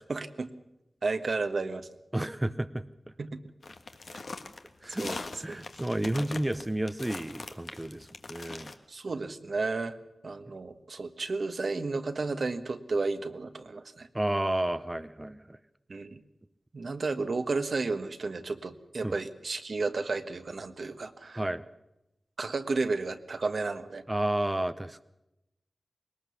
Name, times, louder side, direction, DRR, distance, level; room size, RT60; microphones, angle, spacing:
voice 1, 0.1-0.5 1.0-1.9 3.2-3.4 5.0-5.2 5.5-5.6 8.9-10.0 10.2-14.1 15.9-16.2 16.7-21.4 22.4-24.0, right 3 dB, 65° right, 9 dB, 1.3 m, -32 dB
voice 2, 2.1-2.8 4.8-8.7 10.5-10.6 14.1-15.6 19.0-19.1 21.3-21.6 24.1-25.0, right 1 dB, 20° right, 12 dB, 0.7 m, -31 dB
sound 1, 3.6-8.7, left 3 dB, 70° left, 1.5 m, -41 dB
21.0 x 19.0 x 7.0 m, 0.91 s
cardioid pair, 55°, 0 cm